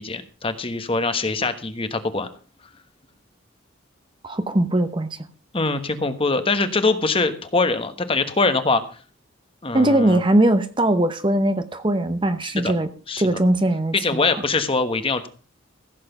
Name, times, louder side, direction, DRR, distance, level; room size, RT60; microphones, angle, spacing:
voice 1, 0.0-2.3 5.5-8.8 9.6-10.2 12.6-12.7 13.1-13.2 13.9-15.3, left 3 dB, 30° left, 9 dB, 1.2 m, -23 dB
voice 2, 4.2-5.2 9.7-12.9 13.2-14.2, right 1 dB, 25° right, 10 dB, 0.9 m, -20 dB
15.5 x 7.6 x 5.9 m, 0.38 s
head